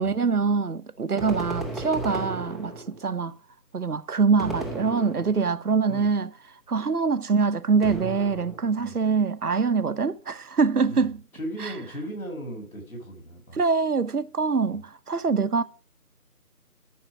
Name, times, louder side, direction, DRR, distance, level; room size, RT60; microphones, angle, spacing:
voice 1, 0.0-3.3 3.7-6.3 6.7-11.2 11.6-11.7 13.5-15.6, right 5 dB, 75° right, 0.9 m, -24 dB
sound 1, 1.2-3.1 4.4-5.6 7.8-8.8, right 2 dB, ahead, 0.7 m, -35 dB
voice 2, 10.8-13.6 14.7-14.8, right 1 dB, 65° left, 6.4 m, -37 dB
13.0 x 6.5 x 4.8 m
figure-of-eight pair, 175°, 46 cm